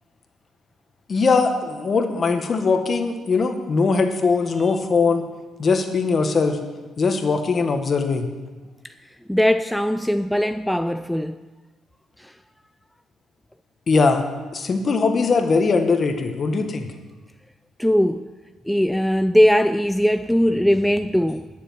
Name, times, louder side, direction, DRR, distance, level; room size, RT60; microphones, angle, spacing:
voice 1, 1.1-5.2 5.6-6.6 7.0-8.3 13.9-14.2 14.5-16.9, left 4 dB, 45° left, 1.5 m, -20 dB
voice 2, 9.3-11.3 12.2-12.3 17.8-18.3 18.7-21.5, equal, ahead, 0.4 m, -20 dB
10.5 x 6.9 x 9.3 m
cardioid pair, 90°, 0 cm